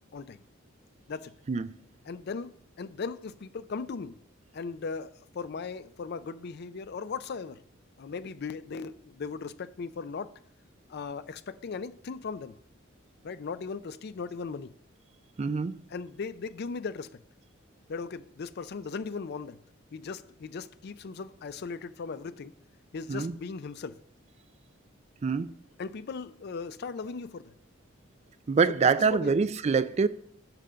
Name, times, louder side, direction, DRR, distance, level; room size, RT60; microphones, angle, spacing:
voice 1, 2.1-4.2 4.5-7.6 8.0-10.3 10.9-12.5 13.2-14.7 15.9-17.2 17.9-19.6 19.9-22.6 22.9-24.0 25.8-27.5 29.1-29.3, left 5 dB, 55° left, 0.4 m, -38 dB
voice 2, 15.4-15.8 23.1-23.3 25.2-25.5 28.5-30.1, right 5 dB, 35° right, 0.3 m, -25 dB
10.5 x 3.7 x 6.7 m
head